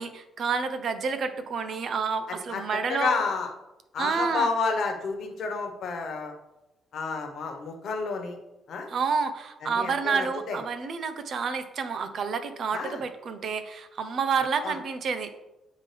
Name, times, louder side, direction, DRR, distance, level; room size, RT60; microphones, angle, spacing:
voice 1, 0.0-3.2 4.0-4.5 8.9-15.3, right 5 dB, 60° right, 10 dB, 0.7 m, -29 dB
voice 2, 2.3-3.5 3.9-6.3 6.9-8.4 8.7-8.9 9.6-10.6 12.7-13.0 14.6-14.8, left 4 dB, 65° left, 3 dB, 1.1 m, -30 dB
9.3 x 3.7 x 3.4 m, 0.94 s
cardioid pair, 90°, 0 cm